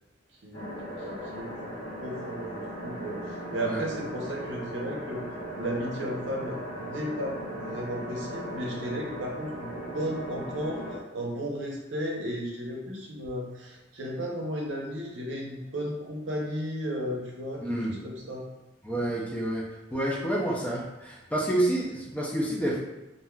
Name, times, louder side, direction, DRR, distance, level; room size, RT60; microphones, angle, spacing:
sound 1, 0.5-11.0, right 1 dB, 75° left, 1.1 m, -38 dB
voice 1, 1.0-5.2 5.5-18.4, equal, 65° right, -1 dB, 0.7 m, -34 dB
voice 2, 17.6-17.9 18.8-19.6 19.9-22.8, right 1 dB, 5° left, -4 dB, 0.4 m, -28 dB
3.4 x 2.6 x 2.2 m, 1.0 s
head